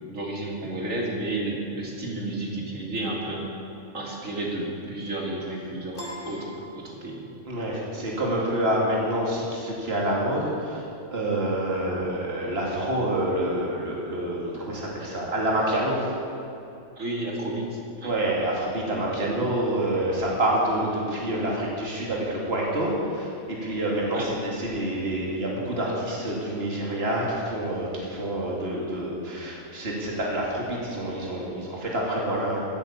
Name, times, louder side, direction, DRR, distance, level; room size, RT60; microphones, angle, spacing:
voice 1, 0.0-3.5 3.9-7.2 17.0-18.1 19.1-19.3 24.1-24.3, right 2 dB, 65° right, -2 dB, 3.1 m, -32 dB
Piano, 5.9-7.5, equal, 40° left, 2.6 m, -40 dB
voice 2, 7.4-10.8 11.1-16.1 18.0-32.6, right 1 dB, 45° right, -3 dB, 2.9 m, -27 dB
16.5 x 9.6 x 7.3 m, 2.7 s
omnidirectional pair, 1.5 m